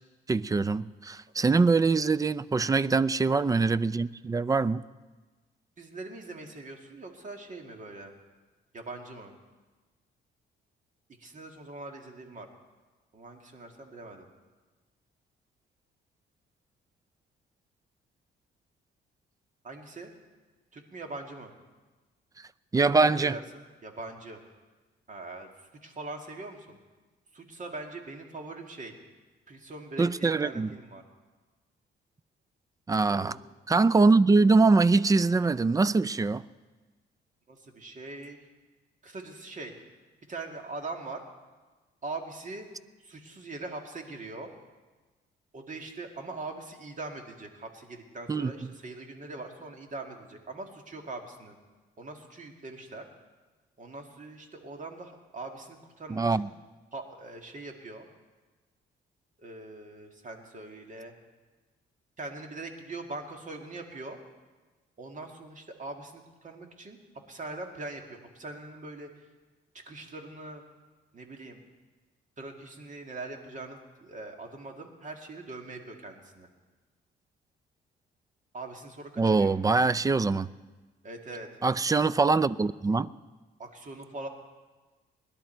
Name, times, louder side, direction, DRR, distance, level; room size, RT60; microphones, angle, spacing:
voice 1, 0.3-4.8 22.7-23.4 30.0-30.7 32.9-33.4 33.7-36.4 48.3-48.7 56.1-56.5 79.2-80.5 81.6-83.1, right 3 dB, 15° right, 18 dB, 0.4 m, -23 dB
voice 2, 1.4-1.7 5.8-8.1 8.7-9.3 11.2-12.5 13.1-14.3 19.6-20.1 20.7-21.5 23.0-24.4 25.1-25.5 25.8-26.8 27.3-28.9 29.5-31.0 33.1-33.3 37.5-38.4 39.0-39.7 40.3-41.2 42.0-42.7 43.0-44.5 45.5-51.6 52.0-53.0 53.8-56.5 56.9-58.1 59.4-61.1 62.2-64.2 65.0-67.0 67.3-69.1 69.9-70.6 71.1-71.6 72.4-76.5 78.5-79.5 81.0-81.5 83.6-84.3, right 2 dB, 40° right, 3 dB, 2.1 m, -42 dB
20.5 x 11.5 x 4.5 m, 1.3 s
cardioid pair, 90°, 20 cm